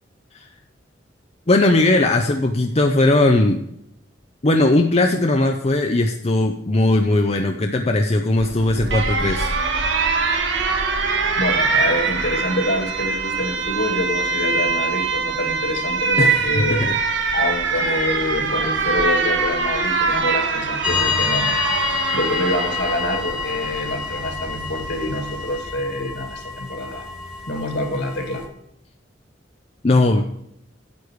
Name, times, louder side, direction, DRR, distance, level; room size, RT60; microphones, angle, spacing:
voice 1, 1.5-3.6 4.4-9.5 16.2-17.0 29.8-30.2, left 2 dB, 35° left, 4 dB, 0.7 m, -18 dB
Alarm, 8.4-25.6, right 4 dB, 75° right, 1.5 m, -23 dB
voice 2, 11.4-16.8 17.3-21.6 22.1-27.1 27.4-28.4, left 1 dB, 65° left, 4 dB, 2.3 m, -26 dB
sound 1, 20.8-28.5, left 5 dB, 5° right, 1.6 m, -28 dB
9.6 x 8.4 x 4.7 m, 0.76 s
head